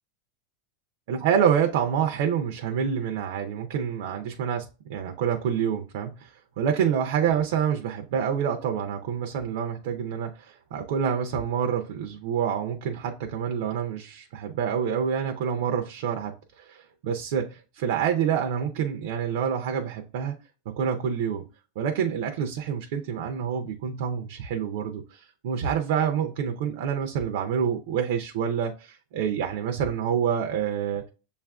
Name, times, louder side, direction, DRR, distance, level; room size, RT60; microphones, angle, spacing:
voice 1, 1.1-20.4 20.7-21.5 21.8-31.1, right 8 dB, 60° right, 0.5 m, -27 dB
6.8 x 2.4 x 2.2 m
supercardioid pair, 165°, 0 cm